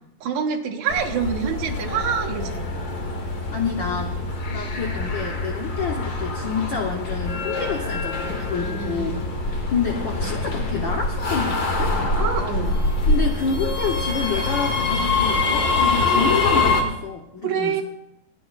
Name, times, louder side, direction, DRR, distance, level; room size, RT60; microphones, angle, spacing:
voice 1, 0.2-2.7 8.6-9.2 12.2-12.8 17.4-17.8, right 7 dB, 70° right, 1 dB, 2.4 m, -26 dB
sound 1, 0.9-16.8, left 3 dB, 50° left, 1.2 m, -24 dB
voice 2, 3.5-4.2 4.5-11.9 13.1-17.8, left 6 dB, 85° left, 1 dB, 1.0 m, -28 dB
26.5 x 9.2 x 2.4 m, 0.84 s
omnidirectional pair, 3.4 m